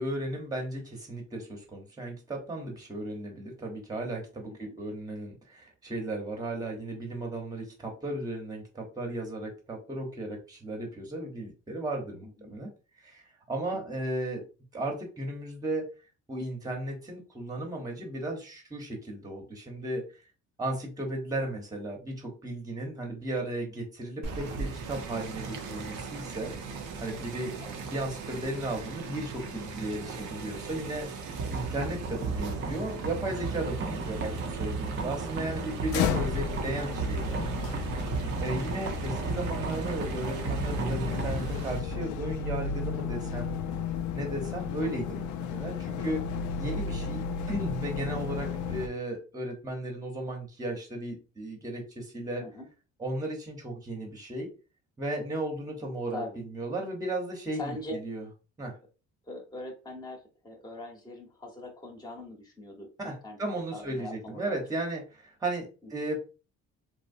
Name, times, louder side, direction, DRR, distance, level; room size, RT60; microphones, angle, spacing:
voice 1, 0.0-12.7 13.0-13.2 13.5-14.4 14.7-15.9 16.3-20.0 20.6-26.5 27.0-27.5 27.8-37.4 38.4-43.6 44.1-46.2 46.6-52.4 53.0-54.5 55.0-58.2 58.6-58.8 63.0-66.2, right 1 dB, 10° right, 1 dB, 0.9 m, -35 dB
voice 2, 12.2-12.6 13.7-14.0 27.6-27.8 52.4-52.7 56.1-56.4 57.5-58.0 59.2-64.6, left 1 dB, 15° left, 1 dB, 0.9 m, -42 dB
sound 1, 24.2-41.8, right 5 dB, 85° right, 0.7 m, -39 dB
sound 2, 31.4-45.2, right 2 dB, 40° right, 0.6 m, -35 dB
sound 3, 35.9-48.9, left 6 dB, 75° left, 0.5 m, -34 dB
3.1 x 2.1 x 2.6 m, 0.33 s
cardioid pair, 90°, 30 cm